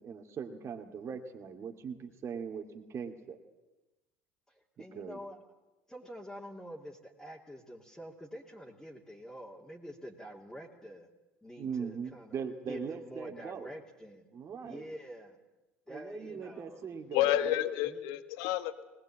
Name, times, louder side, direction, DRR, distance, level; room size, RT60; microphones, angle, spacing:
voice 1, 0.0-3.4 4.8-5.2 11.6-13.7 14.3-14.9 15.9-17.6, right 6 dB, 40° right, 4 dB, 2.3 m, -40 dB
voice 2, 4.5-5.4 5.9-11.1 11.4-12.4 12.7-14.3 14.6-15.4 15.9-16.8 17.8-18.0, equal, 5° left, -2 dB, 2.8 m, -47 dB
voice 3, 17.1-18.8, left 12 dB, 65° left, 12 dB, 1.4 m, -30 dB
20.5 x 20.0 x 8.7 m, 1.1 s
hypercardioid pair, 70°, 7 cm